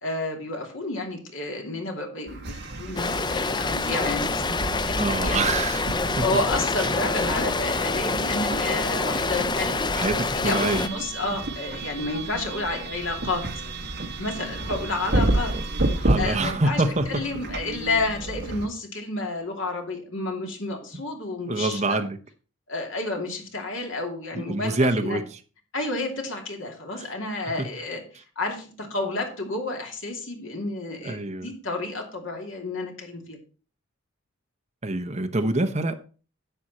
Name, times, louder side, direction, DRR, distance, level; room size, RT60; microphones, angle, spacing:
voice 1, 0.0-4.6 4.9-5.4 6.2-9.9 10.3-13.4 14.2-15.5 16.2-16.8 17.1-22.0 22.7-25.2 25.7-28.0 28.4-33.4, left 2 dB, 60° left, 2.7 m, -30 dB
sound 1, 2.3-18.7, right 2 dB, 50° right, 1.5 m, -31 dB
Rain, 3.0-10.9, left 3 dB, 20° left, 0.4 m, -26 dB
voice 2, 5.0-5.9 6.2-6.3 6.8-7.0 9.9-10.9 15.5-15.6 16.0-17.2 21.5-22.2 24.3-25.4 27.0-27.1 31.0-31.5 34.8-36.0, right 2 dB, 30° right, 0.8 m, -26 dB
11.5 x 7.5 x 4.2 m
head